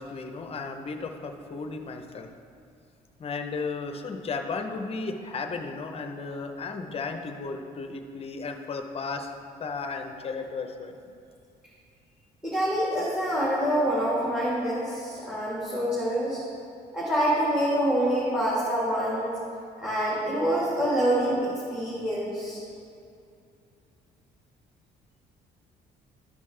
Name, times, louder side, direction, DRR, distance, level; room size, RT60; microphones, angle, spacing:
voice 1, 0.0-2.3 3.2-9.3 9.6-10.9, left 4 dB, 35° left, 6 dB, 0.7 m, -34 dB
voice 2, 12.4-16.4 16.9-19.4 19.8-22.6, equal, 5° right, -8 dB, 2.0 m, -26 dB
12.5 x 5.3 x 3.3 m, 2.5 s
cardioid pair, 110°, 17 cm